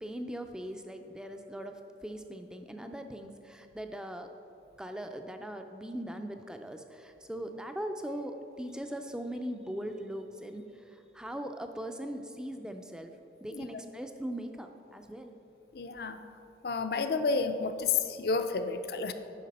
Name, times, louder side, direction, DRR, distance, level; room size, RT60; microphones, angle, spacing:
voice 1, 0.0-4.3 4.8-10.6 11.1-13.1 13.4-15.3, equal, 5° right, 6 dB, 0.3 m, -40 dB
voice 2, 13.5-13.8 15.7-16.2 16.6-19.1, left 4 dB, 60° left, 9 dB, 0.4 m, -30 dB
9.3 x 5.8 x 4.1 m, 2.8 s
head